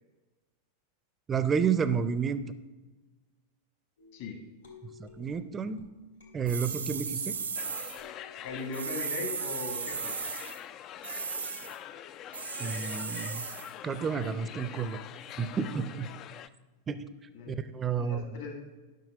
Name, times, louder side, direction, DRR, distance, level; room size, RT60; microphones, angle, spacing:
voice 1, 1.3-2.4 5.0-5.8 6.3-7.3 12.6-13.4 13.8-15.0 15.4-16.1 16.9-17.0 17.5-18.3, right 6 dB, 20° right, 13 dB, 0.5 m, -30 dB
sound 1, 4.0-7.5 8.0-9.2, left 5 dB, 75° left, 2.1 m, -55 dB
sound 2, 6.5-8.0 8.7-10.6 11.0-11.7 12.3-13.7, right 6 dB, 75° right, 0.9 m, -36 dB
sound 3, 7.6-16.5, left 10 dB, 35° left, 0.3 m, -45 dB
voice 2, 8.4-10.2 17.3-17.6 18.0-18.6, left 3 dB, 55° left, 3 dB, 2.0 m, -38 dB
10.5 x 6.0 x 4.9 m, 1.2 s
figure-of-eight pair, 90°, 0 cm